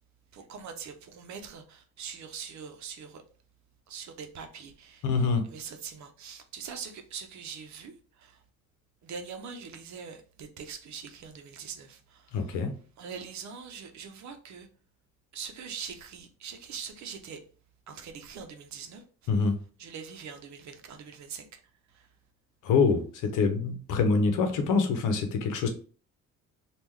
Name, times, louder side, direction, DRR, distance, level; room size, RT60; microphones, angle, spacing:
voice 1, 0.3-3.2 3.9-5.0 5.5-8.4 9.0-12.6 13.0-14.7 15.3-17.4 17.9-19.0 19.8-21.5 21.9-22.1, right 6 dB, 65° right, 0.7 m, -43 dB
voice 2, 5.0-5.5 12.3-12.7 19.3-19.6 22.6-25.7, left 4 dB, 85° left, 0.8 m, -25 dB
3.6 x 2.4 x 3.1 m
cardioid pair, 90°, 30 cm